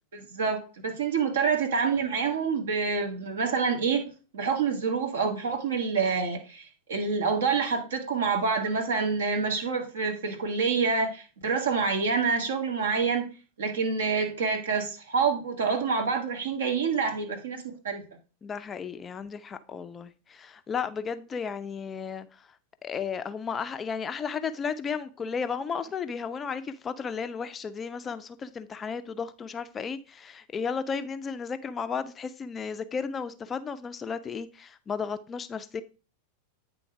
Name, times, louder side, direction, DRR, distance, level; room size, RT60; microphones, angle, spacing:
voice 1, 0.1-4.0 4.3-13.3 13.6-18.0, right 5 dB, 65° right, 1.6 m, -27 dB
voice 2, 18.4-22.5 22.8-35.8, left 6 dB, 20° left, 0.4 m, -34 dB
9.0 x 3.8 x 4.7 m
figure-of-eight pair, 90°, 0 cm